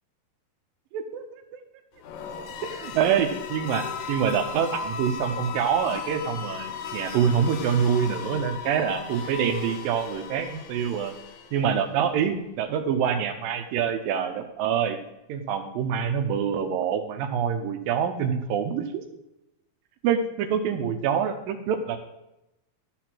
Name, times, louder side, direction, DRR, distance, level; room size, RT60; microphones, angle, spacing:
voice 1, 0.9-1.6 2.6-11.1 11.5-15.0 15.3-19.0 20.0-22.0, right 7 dB, 80° right, 6 dB, 2.2 m, -26 dB
sound 1, 2.0-11.9, left 6 dB, 90° left, 2.9 m, -36 dB
12.5 x 4.2 x 6.0 m, 0.90 s
omnidirectional pair, 4.4 m